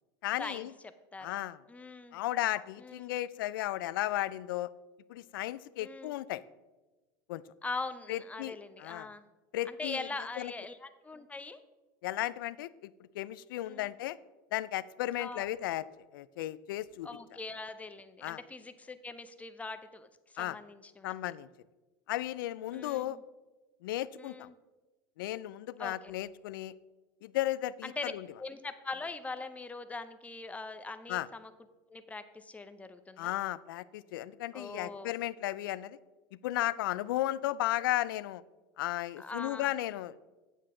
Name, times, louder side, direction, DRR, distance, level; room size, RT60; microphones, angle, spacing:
voice 1, 0.2-0.7 1.2-1.6 2.1-4.7 5.1-6.4 7.3-7.4 8.1-9.1 9.5-10.1 10.4-10.5 12.0-14.2 14.5-15.9 16.1-17.1 18.2-18.4 20.4-20.6 21.0-21.5 22.1-23.2 23.8-24.5 25.2-26.7 27.2-28.3 31.1-31.3 33.2-36.0 36.3-38.4 38.8-40.2, left 15 dB, 80° left, 18 dB, 0.4 m, -35 dB
voice 2, 1.7-2.2 2.8-3.1 5.8-6.2 7.6-9.2 9.7-11.6 13.7-13.9 15.2-15.5 17.0-21.3 22.7-23.2 24.2-24.6 25.8-25.9 27.8-28.1 28.4-31.5 31.9-33.4 34.5-35.1 39.2-39.7, left 3 dB, 10° left, 11 dB, 0.7 m, -42 dB
8.9 x 7.6 x 3.7 m, 1.2 s
supercardioid pair, 100°, 11 cm